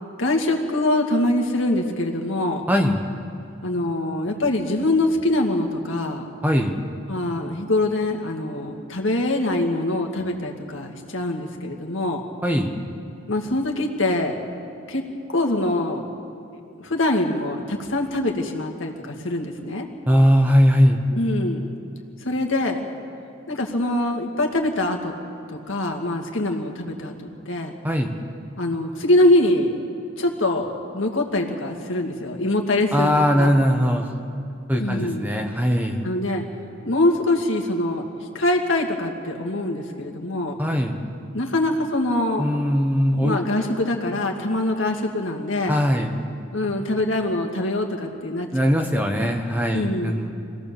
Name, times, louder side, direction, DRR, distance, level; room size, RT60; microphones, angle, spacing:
voice 1, 0.2-2.7 3.6-6.2 7.1-12.2 13.3-14.4 14.9-15.0 15.3-16.0 16.8-19.9 21.1-21.6 22.2-22.8 23.5-25.1 25.5-27.1 27.5-27.7 28.6-29.7 30.2-30.7 30.9-33.6 34.8-35.3 36.0-36.4 36.8-38.1 38.3-40.6 41.3-42.4 43.2-45.8 46.5-48.7 49.7-50.3, left 1 dB, 65° left, 2 dB, 2.3 m, -23 dB
voice 2, 2.7-3.0 6.4-6.8 12.4-12.7 20.1-21.0 27.8-28.2 32.9-34.1 34.7-36.0 40.6-41.0 42.4-43.4 45.7-46.1 48.5-50.4, equal, 10° right, 3 dB, 1.2 m, -20 dB
24.5 x 17.0 x 7.0 m, 2.8 s
head